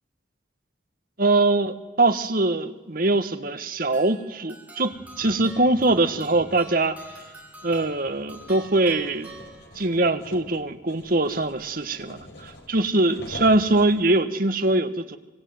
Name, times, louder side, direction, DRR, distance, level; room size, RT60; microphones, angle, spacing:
voice 1, 1.2-7.0 7.6-9.3 9.7-15.2, right 2 dB, 50° right, 9 dB, 1.6 m, -22 dB
sound 1, 3.9-10.1, right 2 dB, 10° right, 4.2 m, -46 dB
sound 2, 4.9-14.0, left 1 dB, 60° left, 4.4 m, -45 dB
25.0 x 25.0 x 9.6 m, 1.1 s
head